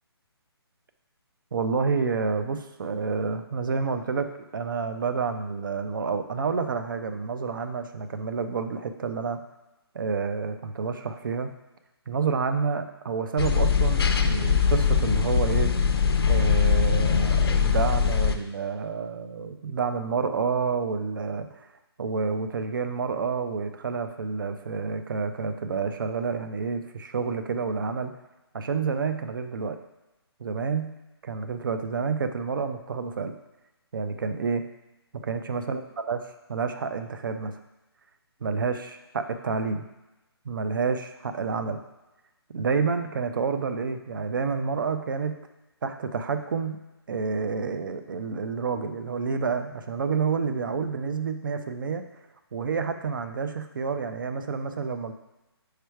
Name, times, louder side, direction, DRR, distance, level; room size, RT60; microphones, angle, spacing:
voice 1, 1.5-4.3 4.5-9.4 9.9-11.5 12.1-15.7 16.3-21.7 22.0-28.1 28.5-29.8 30.4-30.9 31.2-33.3 33.9-34.6 35.2-35.8 36.1-36.2 36.5-37.6 38.4-39.9 40.5-41.8 42.5-45.4 45.8-46.8 47.1-52.1 52.5-55.1, right 5 dB, 50° right, 8 dB, 0.5 m, -29 dB
sound 1, 13.4-18.4, left 6 dB, 65° left, 0.6 m, -22 dB
4.9 x 4.5 x 4.6 m, 1.0 s
hypercardioid pair, 170°, 14 cm